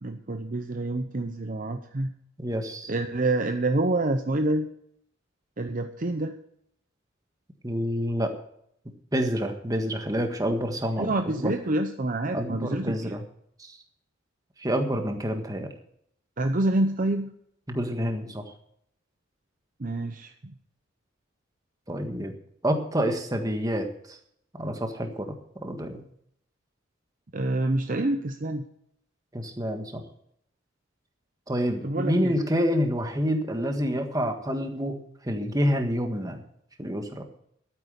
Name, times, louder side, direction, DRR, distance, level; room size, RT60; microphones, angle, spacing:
voice 1, 0.0-2.1 2.9-4.7 5.6-6.4 11.0-13.2 16.4-17.3 19.8-20.5 27.3-28.6 31.8-32.4 33.8-34.0, right 2 dB, 40° right, 7 dB, 0.7 m, -27 dB
voice 2, 2.4-2.9 7.6-8.3 9.1-11.1 11.4-11.5 12.3-13.2 13.6-13.8 14.6-15.7 17.7-18.4 21.9-22.3 22.6-24.2 24.5-26.0 29.3-30.0 31.5-35.0 35.2-36.4 36.8-37.2, equal, 20° right, 5 dB, 1.6 m, -28 dB
12.5 x 9.2 x 6.7 m, 0.69 s
head